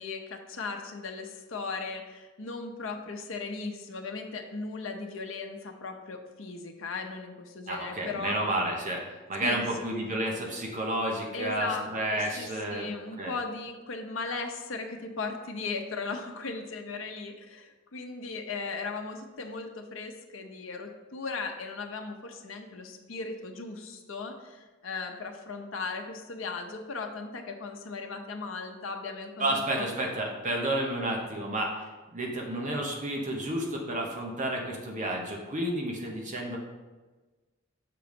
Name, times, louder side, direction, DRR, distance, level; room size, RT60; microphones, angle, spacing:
voice 1, 0.0-8.4 9.4-9.6 11.3-11.9 12.1-29.9, left 4 dB, 75° left, 3 dB, 0.7 m, -37 dB
voice 2, 7.7-12.9 13.2-13.3 29.4-31.8 32.1-36.6, right 1 dB, 40° right, 0 dB, 1.0 m, -31 dB
6.8 x 3.9 x 5.1 m, 1.2 s
head